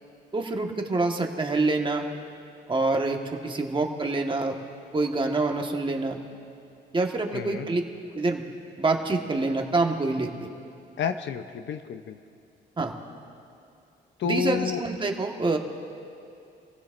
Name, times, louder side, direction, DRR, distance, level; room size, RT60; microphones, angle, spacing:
voice 1, 0.3-2.1 2.7-4.6 4.9-6.2 6.9-7.8 8.1-8.4 8.8-10.5 12.8-12.9 14.2-15.6, right 3 dB, 25° right, 2 dB, 1.5 m, -26 dB
voice 2, 7.3-7.7 11.0-12.2 14.2-14.8, left 7 dB, 65° left, 8 dB, 0.8 m, -30 dB
27.0 x 16.0 x 2.6 m, 2.5 s
cardioid pair, 90°, 20 cm